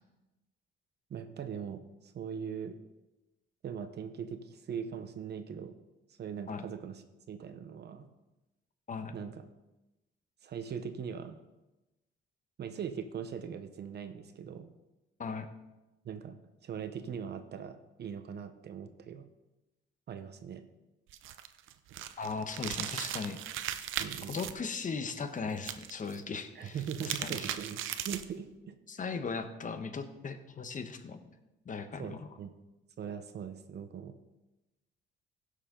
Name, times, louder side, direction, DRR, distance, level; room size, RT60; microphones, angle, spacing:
voice 1, 1.1-2.8 3.6-5.8 6.2-7.0 7.3-8.0 9.1-9.5 10.4-11.4 12.6-14.7 16.0-16.4 16.6-19.2 20.1-20.6 24.0-24.4 26.5-28.7 32.0-32.5 33.0-34.1, right 7 dB, 55° right, 9 dB, 1.0 m, -40 dB
sound 1, 21.1-24.5 25.6-26.2 26.7-28.4, right 11 dB, 80° right, 0.7 m, -38 dB
voice 2, 22.2-23.4 24.3-27.5 28.9-31.2 31.6-32.3, left 5 dB, 40° left, 9 dB, 1.1 m, -38 dB
16.0 x 6.7 x 3.8 m, 1.0 s
cardioid pair, 90°, 20 cm